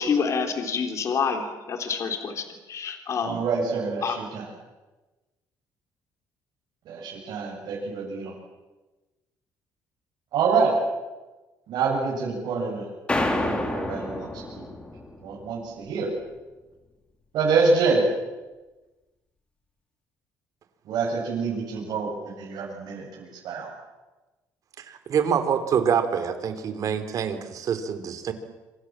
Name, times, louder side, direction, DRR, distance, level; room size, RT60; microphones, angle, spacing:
voice 1, 0.0-3.5 4.0-4.2, left 5 dB, 45° left, 5 dB, 3.7 m, -27 dB
voice 2, 3.2-4.0 4.3-4.4 6.9-8.3 10.3-10.7 11.7-12.9 13.2-14.3 14.5-14.7 15.2-16.1 17.3-18.0 20.9-23.7, right 4 dB, 70° right, -4 dB, 7.6 m, -26 dB
sound 1, 13.1-15.5, left 1 dB, 15° left, 3.7 m, -29 dB
voice 3, 24.8-28.3, right 7 dB, 50° right, 9 dB, 3.5 m, -26 dB
26.5 x 26.0 x 7.6 m, 1.1 s
cardioid pair, 125°, 7 cm